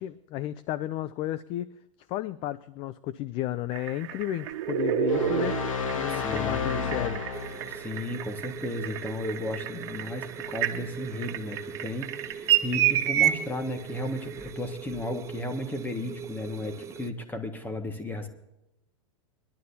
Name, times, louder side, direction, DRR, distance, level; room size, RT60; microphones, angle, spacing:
voice 1, 0.0-1.7 2.1-5.7 5.9-7.2, left 13 dB, 35° left, 17 dB, 0.4 m, -33 dB
sound 1, 3.7-13.3 14.5-14.6, right 11 dB, 50° right, 1.5 m, -29 dB
sound 2, 5.1-7.9, left 5 dB, 80° left, 1.3 m, -31 dB
voice 2, 6.1-7.1 7.6-18.3, left 1 dB, 10° left, 6 dB, 1.7 m, -34 dB
sound 3, 7.3-17.1, right 6 dB, 15° right, 0.6 m, -42 dB
22.0 x 12.0 x 2.8 m, 0.91 s
hypercardioid pair, 130°, 17 cm